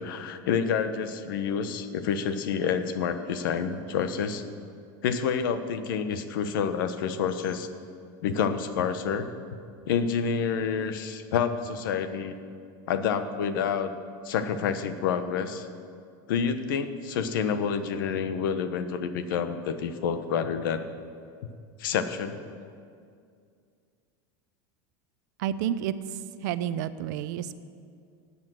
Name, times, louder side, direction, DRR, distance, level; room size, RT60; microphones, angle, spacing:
voice 1, 0.0-4.4 5.0-7.7 8.2-9.3 9.9-12.4 12.9-13.9 14.2-15.7 16.3-20.9 21.8-22.4, left 7 dB, 80° left, 10 dB, 1.1 m, -28 dB
voice 2, 25.4-25.9 26.4-27.6, right 10 dB, 60° right, 14 dB, 0.6 m, -30 dB
18.5 x 8.6 x 6.4 m, 2.3 s
supercardioid pair, 180°, 11 cm